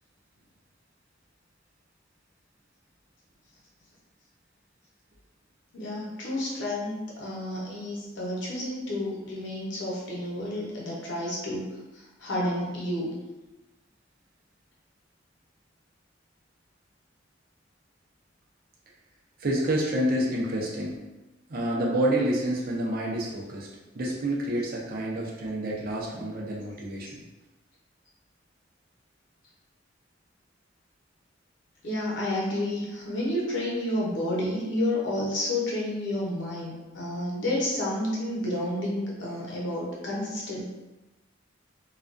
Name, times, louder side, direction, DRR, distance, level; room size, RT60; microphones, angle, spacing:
voice 1, 5.7-13.1 31.8-40.6, left 1 dB, 70° left, -4 dB, 0.7 m, -30 dB
voice 2, 19.4-20.9 21.5-23.7 24.0-27.2, right 1 dB, 50° right, -3 dB, 0.5 m, -28 dB
2.3 x 2.2 x 2.5 m, 1.1 s
head